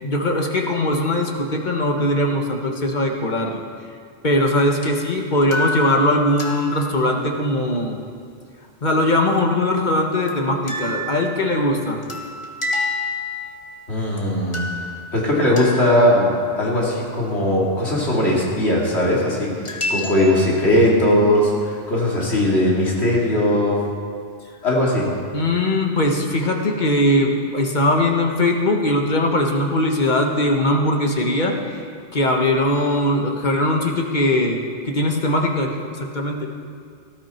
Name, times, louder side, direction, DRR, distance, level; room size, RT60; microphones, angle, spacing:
voice 1, 0.0-3.6 4.2-8.0 8.8-12.0 25.3-31.8 32.1-34.6 34.8-36.5, left 1 dB, 40° left, 2 dB, 1.5 m, -20 dB
sound 1, 4.8-4.9 5.4-7.3 10.3-10.4 10.7-13.8 14.2-14.3 14.5-16.2 19.6-20.9, left 2 dB, 25° left, 1.5 m, -29 dB
voice 2, 13.9-23.8 24.6-25.1, left 1 dB, 65° left, -4 dB, 3.2 m, -19 dB
18.5 x 13.0 x 4.5 m, 2.2 s
omnidirectional pair, 1.2 m